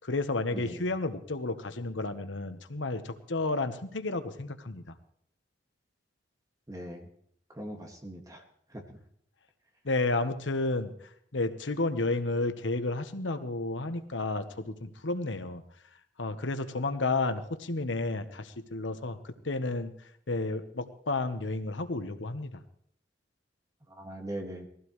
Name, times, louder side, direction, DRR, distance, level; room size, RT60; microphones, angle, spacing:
voice 1, 0.0-4.8 9.8-10.9 11.3-15.6 16.2-19.9 20.3-22.6, left 2 dB, 90° left, 9 dB, 1.2 m, -31 dB
voice 2, 0.5-0.8 6.7-7.1 7.5-8.4 8.7-9.0 23.9-24.6, right 1 dB, 20° right, 2 dB, 2.0 m, -40 dB
21.0 x 15.5 x 3.2 m, 0.68 s
head